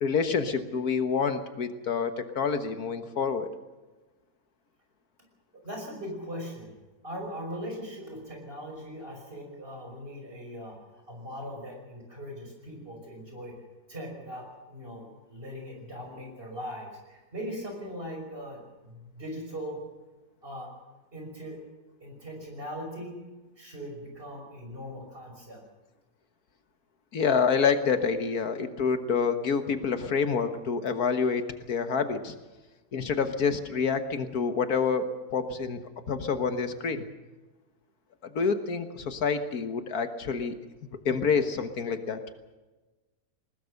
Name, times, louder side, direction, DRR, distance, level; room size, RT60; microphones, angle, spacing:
voice 1, 0.0-3.5 27.1-32.3 32.9-35.8 36.1-37.0 38.4-40.6 41.1-42.2, left 5 dB, 70° left, 9 dB, 1.8 m, -27 dB
voice 2, 5.6-6.8 7.0-10.8 11.1-13.5 13.9-19.8 20.4-20.7 21.1-21.6 22.0-23.2 23.6-25.6, equal, 35° right, 2 dB, 5.9 m, -40 dB
20.5 x 20.0 x 6.6 m, 1.2 s
omnidirectional pair, 1.7 m